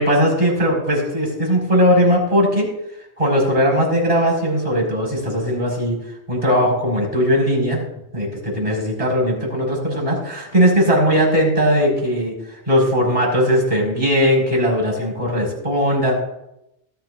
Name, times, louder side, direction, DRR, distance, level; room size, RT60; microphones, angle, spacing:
voice 1, 0.0-2.7 3.2-6.0 6.3-7.8 8.1-16.1, equal, 30° right, -2 dB, 4.7 m, -18 dB
18.5 x 11.5 x 2.4 m, 0.87 s
omnidirectional pair, 1.2 m